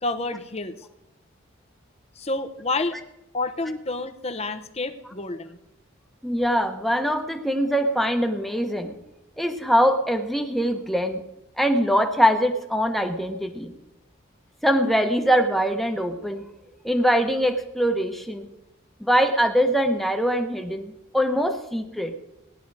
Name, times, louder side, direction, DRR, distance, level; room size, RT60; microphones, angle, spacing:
voice 1, 0.0-0.7 2.2-3.0 3.3-5.6, left 2 dB, 30° left, 9 dB, 0.9 m, -29 dB
voice 2, 6.2-8.9 9.4-11.2 11.6-13.7 14.6-16.5 16.8-18.5 19.0-22.1, equal, ahead, 5 dB, 1.1 m, -23 dB
17.5 x 11.0 x 4.8 m, 0.90 s
head